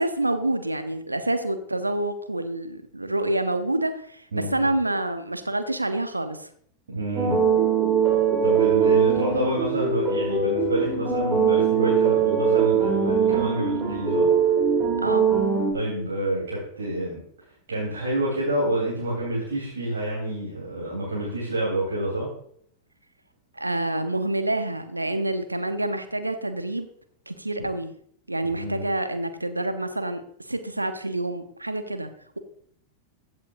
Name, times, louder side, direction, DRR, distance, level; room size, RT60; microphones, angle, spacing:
voice 1, 0.0-6.5 15.0-15.3 23.6-26.9 27.3-27.9 28.3-30.2 30.5-32.1, right 1 dB, 85° right, 9 dB, 0.9 m, -27 dB
voice 2, 4.3-4.7 6.9-7.4 8.4-14.3 15.7-17.2 17.7-22.3 28.5-28.8, right 1 dB, 70° right, -6 dB, 3.6 m, -28 dB
sound 1, 7.2-15.7, right 6 dB, 20° right, 2.8 m, -21 dB
15.0 x 7.6 x 2.6 m, 0.64 s
figure-of-eight pair, 90°, 0 cm